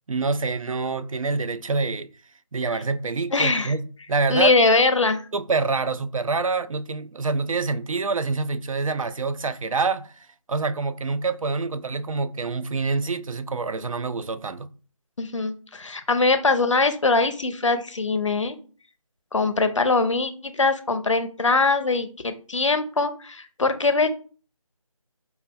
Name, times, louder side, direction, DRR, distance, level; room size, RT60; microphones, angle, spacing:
voice 1, 0.1-2.1 2.5-3.8 4.1-4.6 5.3-14.7, right 4 dB, 70° right, 0.4 m, -26 dB
voice 2, 3.3-3.7 4.3-5.2 15.2-18.6 19.3-24.1, left 3 dB, 60° left, 0.5 m, -22 dB
5.4 x 2.3 x 2.2 m
figure-of-eight pair, 165°, 18 cm